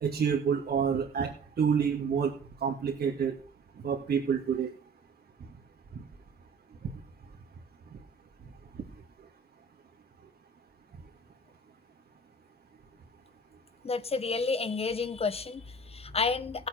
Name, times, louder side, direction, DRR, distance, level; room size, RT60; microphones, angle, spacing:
voice 1, 0.0-2.3 2.6-3.4 3.8-4.7 5.9-6.0, right 7 dB, 75° right, 2.7 m, -28 dB
voice 2, 13.8-16.7, left 4 dB, 40° left, 1.4 m, -30 dB
19.5 x 8.1 x 4.7 m
wide cardioid pair, 105°, 16 cm